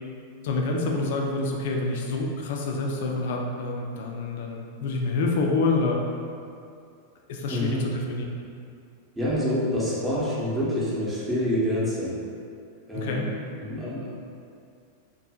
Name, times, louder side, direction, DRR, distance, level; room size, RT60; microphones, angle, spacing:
voice 1, 0.4-6.0 7.3-8.2 12.9-13.3, left 3 dB, 55° left, 0 dB, 0.3 m, -27 dB
voice 2, 7.5-7.8 9.2-12.1 12.9-13.3 13.6-14.1, equal, 10° right, -8 dB, 0.7 m, -27 dB
2.6 x 2.6 x 2.3 m, 2.4 s
figure-of-eight pair, 90°, 0 cm